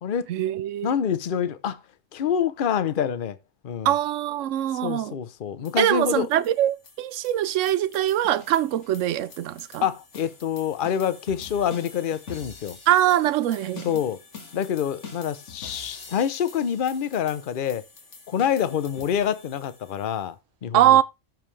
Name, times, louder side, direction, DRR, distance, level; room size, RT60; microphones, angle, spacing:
voice 1, 0.3-0.9 3.8-5.2 5.8-9.8 12.9-13.9 20.7-21.0, right 12 dB, 75° right, 1.0 m, -22 dB
voice 2, 0.8-1.8 2.1-3.4 3.6-4.0 4.7-6.3 9.8-12.8 13.8-14.2 14.5-17.8 18.3-20.4 20.6-21.0, left 8 dB, 50° left, 0.9 m, -26 dB
sound 1, 5.7-20.2, left 4 dB, 65° left, 2.1 m, -46 dB
13.5 x 5.6 x 3.2 m
omnidirectional pair, 1.3 m